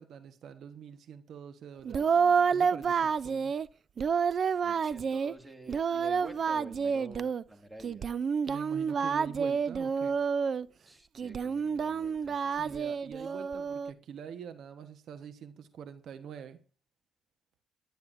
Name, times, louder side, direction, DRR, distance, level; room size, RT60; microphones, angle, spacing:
voice 1, 0.0-2.2 2.5-3.5 8.5-10.3 12.5-16.6, right 7 dB, 70° right, 9 dB, 1.2 m, -45 dB
Singing, 1.8-3.7 4.0-5.3 5.7-7.4 7.8-10.7 11.2-13.9, right 6 dB, 50° right, 0.5 m, -29 dB
voice 2, 4.6-8.1 10.9-12.7, right 1 dB, 15° right, 5 dB, 2.2 m, -49 dB
25.5 x 10.5 x 2.6 m, 0.38 s
cardioid pair, 90°, 0 cm